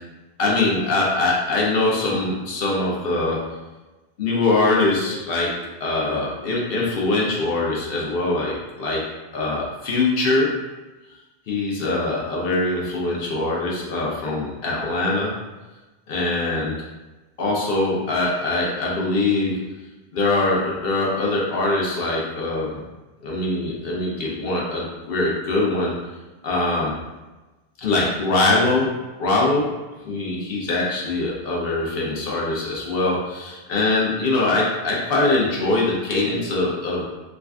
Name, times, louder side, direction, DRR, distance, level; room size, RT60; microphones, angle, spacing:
voice 1, 0.4-3.5 4.2-9.1 9.3-10.6 11.5-15.3 16.1-16.7 17.4-19.7 20.1-22.8 23.2-25.9 26.4-27.0 27.8-29.7 30.0-37.0, left 2 dB, 65° left, -3 dB, 0.8 m, -22 dB
3.5 x 2.4 x 2.3 m, 1.1 s
omnidirectional pair, 1.1 m